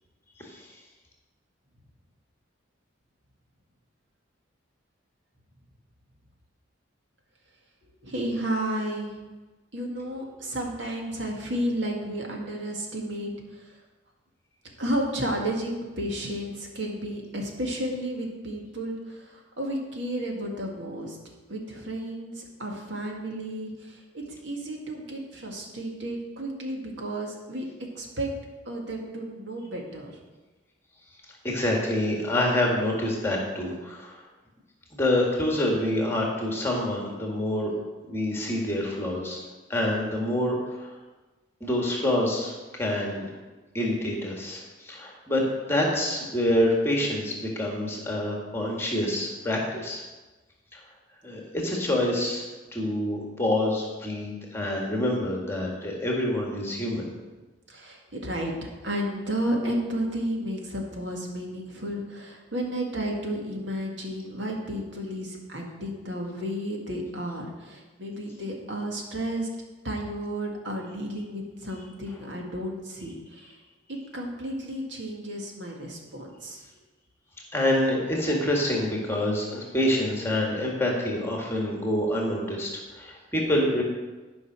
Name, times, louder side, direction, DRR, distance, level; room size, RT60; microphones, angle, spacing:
voice 1, 8.0-9.2 9.7-13.8 14.8-21.2 21.5-24.0 24.3-27.7 27.9-28.3 28.7-30.2 57.7-58.5 58.8-69.5 69.8-73.5 73.9-76.6, right 1 dB, 65° right, 0 dB, 2.0 m, -32 dB
voice 2, 31.4-34.2 34.9-37.7 38.0-39.4 39.7-40.9 41.6-43.3 43.7-50.0 50.7-50.8 51.2-52.4 52.7-57.1 77.5-83.8, left 1 dB, 15° left, -1 dB, 1.7 m, -27 dB
12.0 x 5.5 x 6.1 m, 1.2 s
head